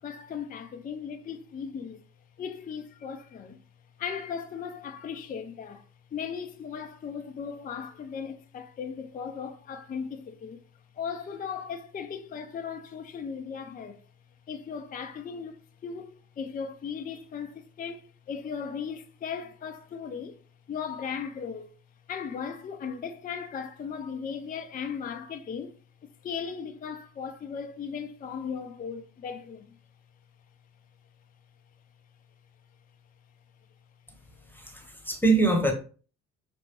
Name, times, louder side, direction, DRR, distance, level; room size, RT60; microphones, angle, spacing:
voice 1, 0.0-2.0 2.4-3.6 4.0-10.6 10.9-14.0 14.5-20.4 20.7-21.7 22.1-25.8 26.0-29.8, left 6 dB, 20° left, 0.5 m, -37 dB
voice 2, 34.6-35.7, right 3 dB, 5° left, 1.2 m, -24 dB
5.1 x 3.3 x 3.0 m
figure-of-eight pair, 45°, 40 cm